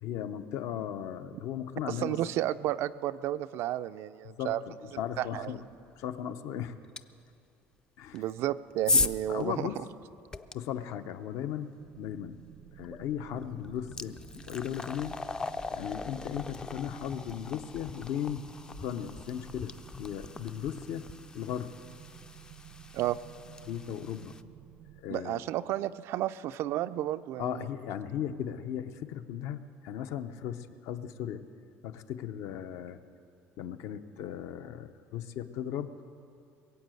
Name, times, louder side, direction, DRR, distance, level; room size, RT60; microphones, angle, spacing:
voice 1, 0.0-2.3 4.3-5.6 6.0-6.8 8.0-8.3 9.3-9.9 10.5-11.7 12.0-12.4 12.8-14.2 14.5-15.2 15.7-18.5 18.8-21.1 21.3-21.7 23.6-24.3 25.0-25.4 27.4-31.4 31.8-33.0 33.6-35.9, left 9 dB, 65° left, 10 dB, 0.7 m, -37 dB
voice 2, 1.9-4.6 5.2-5.5 8.1-9.7 22.9-23.2 25.1-27.7, right 13 dB, 55° right, 12 dB, 0.3 m, -32 dB
sound 1, 7.0-7.1 8.1-10.5 12.8-13.0 13.4-24.4, left 3 dB, 15° left, 0.4 m, -37 dB
sound 2, 11.8-25.0, right 11 dB, 80° right, 0.7 m, -52 dB
22.0 x 8.3 x 7.7 m, 2.5 s
cardioid pair, 150°, 5 cm